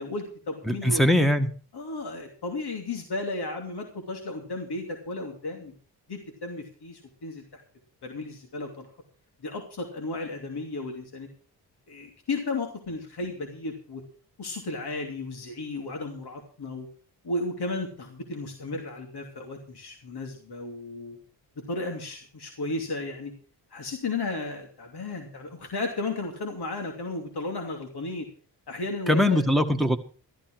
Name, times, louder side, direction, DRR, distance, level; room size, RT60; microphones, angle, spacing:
voice 1, 0.0-1.1 1.7-5.7 6.1-7.6 8.0-8.9 9.4-11.3 11.9-14.0 14.4-16.9 17.2-21.2 21.7-23.3 23.7-28.3 28.7-29.4, left 2 dB, 65° left, 3 dB, 3.0 m, -34 dB
voice 2, 0.7-1.5 29.1-30.0, left 1 dB, ahead, 7 dB, 1.8 m, -21 dB
14.5 x 13.0 x 4.8 m, 0.39 s
cardioid pair, 75°, 43 cm